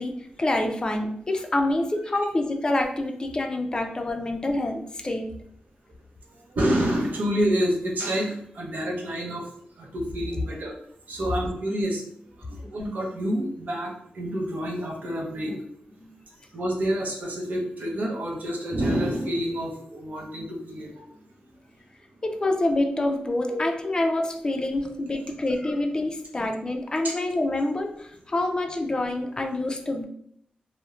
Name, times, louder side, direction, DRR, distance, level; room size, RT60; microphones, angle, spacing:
voice 1, 0.0-5.3 16.0-16.1 22.2-30.0, left 2 dB, 25° left, 3 dB, 0.3 m, -27 dB
voice 2, 6.5-9.5 9.8-10.7 11.1-12.0 12.4-15.6 16.5-21.0 23.5-23.6, equal, 70° right, -1 dB, 0.6 m, -28 dB
2.8 x 2.0 x 2.3 m, 0.69 s
cardioid pair, 80°, 3 cm